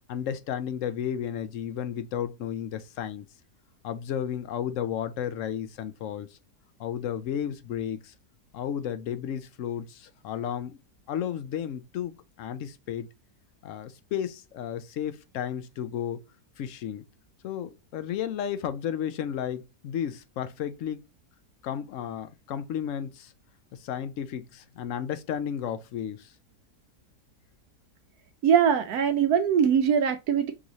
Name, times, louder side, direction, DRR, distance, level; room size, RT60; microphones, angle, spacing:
voice 1, 0.1-3.3 3.8-6.4 6.8-8.1 8.5-10.8 11.1-13.1 13.6-16.2 16.6-17.0 17.4-21.0 21.6-23.3 23.8-26.3, left 9 dB, 65° left, 0.8 m, -33 dB
voice 2, 28.4-30.5, right 8 dB, 75° right, 1.0 m, -22 dB
6.2 x 3.1 x 2.7 m
omnidirectional pair, 1.7 m